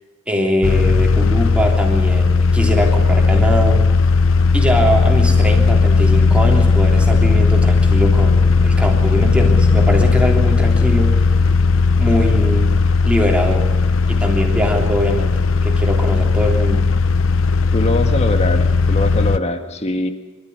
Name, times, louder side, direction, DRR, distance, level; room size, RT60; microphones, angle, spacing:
voice 1, 0.3-3.9 4.5-11.3 12.0-12.7 13.1-13.7 14.1-16.8, equal, 5° right, 1 dB, 3.2 m, -21 dB
sound 1, 0.6-19.4, left 4 dB, 65° left, 0.7 m, -15 dB
voice 2, 17.7-20.1, left 1 dB, 30° left, 7 dB, 1.8 m, -22 dB
26.0 x 13.0 x 9.5 m, 1.3 s
head